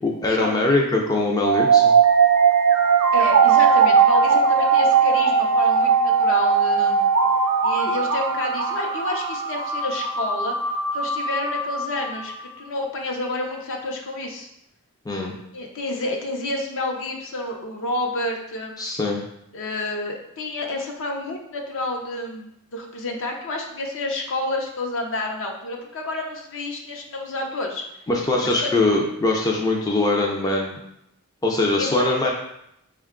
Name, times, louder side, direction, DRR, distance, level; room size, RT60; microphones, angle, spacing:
voice 1, 0.0-1.9 15.1-15.3 18.8-19.2 28.1-30.8 31.4-32.3, left 2 dB, 15° left, -1 dB, 0.4 m, -22 dB
sound 1, 1.4-12.4, right 6 dB, 70° right, 0.5 m, -19 dB
voice 2, 3.1-7.1 7.6-10.6 10.9-12.3 12.6-14.5 15.5-18.8 19.5-27.8 28.4-28.7 31.8-32.0, left 2 dB, 60° left, 2 dB, 0.6 m, -29 dB
4.5 x 2.2 x 3.6 m, 0.80 s
head